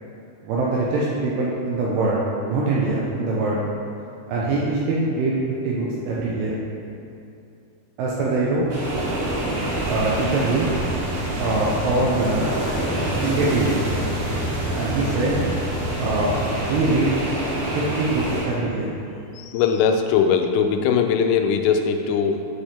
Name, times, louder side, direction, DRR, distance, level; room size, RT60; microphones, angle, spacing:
voice 1, 0.4-3.6 4.3-5.4 5.6-6.5 8.0-8.7 9.9-10.7 11.4-12.6 13.2-13.8 14.7-15.4 16.0-16.4 16.7-17.2 17.8-18.9, right 2 dB, 85° right, -5 dB, 2.5 m, -23 dB
sound 1, 8.7-18.4, right 1 dB, 65° right, 3.0 m, -26 dB
voice 2, 19.3-22.4, left 6 dB, 90° left, 5 dB, 3.1 m, -20 dB
9.0 x 3.4 x 4.2 m, 2.6 s
omnidirectional pair, 5.5 m